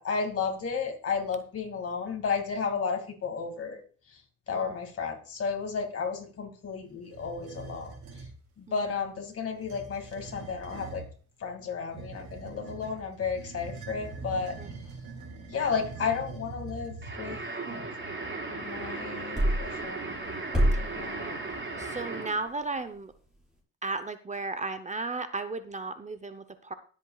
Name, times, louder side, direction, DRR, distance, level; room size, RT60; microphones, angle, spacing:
voice 1, 0.0-3.8 4.5-7.9 8.6-11.0 11.4-14.6 15.5-17.4 18.5-20.2 20.8-21.5, left 5 dB, 50° left, 3 dB, 2.4 m, -33 dB
sound 1, 7.1-8.4 9.5-11.1 11.9-17.4, right 4 dB, 70° right, 3.9 m, -43 dB
sound 2, 17.0-22.5, right 3 dB, 40° right, 4.9 m, -36 dB
sound 3, 19.4-19.7 20.5-21.0, equal, ahead, 5.5 m, -23 dB
voice 2, 21.8-23.1 23.8-26.7, right 3 dB, 25° right, 10 dB, 0.8 m, -35 dB
21.0 x 8.0 x 2.4 m, 0.41 s
cardioid pair, 90°, 30 cm